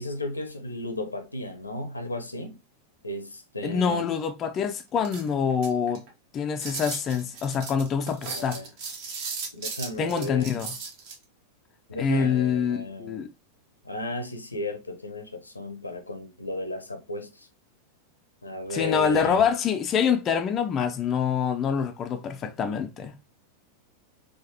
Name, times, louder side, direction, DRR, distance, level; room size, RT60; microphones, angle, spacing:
voice 1, 0.0-2.6 3.0-4.1 8.2-8.7 9.5-10.5 11.9-13.3 13.8-17.5 18.4-19.4, left 1 dB, 80° left, 0.6 m, -34 dB
voice 2, 3.6-6.0 6.3-8.6 10.0-10.7 12.0-13.3 18.7-23.1, left 7 dB, 30° left, 0.3 m, -25 dB
sound 1, 5.0-6.1 6.6-11.1, right 5 dB, 45° right, 0.8 m, -36 dB
3.7 x 2.6 x 2.8 m
figure-of-eight pair, 90°, 0 cm